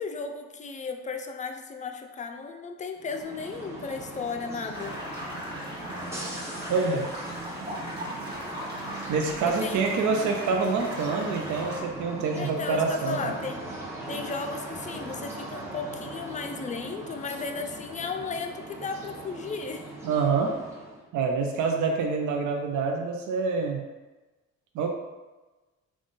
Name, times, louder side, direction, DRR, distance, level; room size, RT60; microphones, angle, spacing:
voice 1, 0.0-5.0 9.6-9.8 10.1-10.3 12.3-13.6 14.1-19.8, left 4 dB, 25° left, 4 dB, 0.4 m, -35 dB
sound 1, 2.9-21.0, right 2 dB, 10° right, 0.8 m, -40 dB
sound 2, 4.7-11.8, equal, 35° right, 1.4 m, -38 dB
voice 2, 6.7-7.1 9.1-13.3 20.0-20.6 21.1-23.8 24.7-24.9, right 4 dB, 75° right, 3 dB, 0.6 m, -26 dB
3.6 x 2.4 x 3.8 m, 1.2 s
cardioid pair, 90°, 30 cm